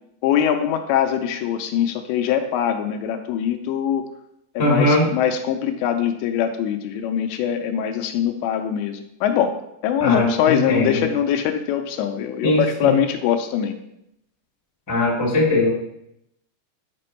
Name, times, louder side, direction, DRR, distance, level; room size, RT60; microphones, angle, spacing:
voice 1, 0.2-4.0 4.6-9.5 9.8-13.7, left 9 dB, 85° left, 6 dB, 2.8 m, -22 dB
voice 2, 4.6-5.1 10.0-11.0 12.4-12.9 14.9-15.7, left 2 dB, 25° left, -4 dB, 0.4 m, -20 dB
8.5 x 5.2 x 4.4 m, 0.79 s
omnidirectional pair, 5.2 m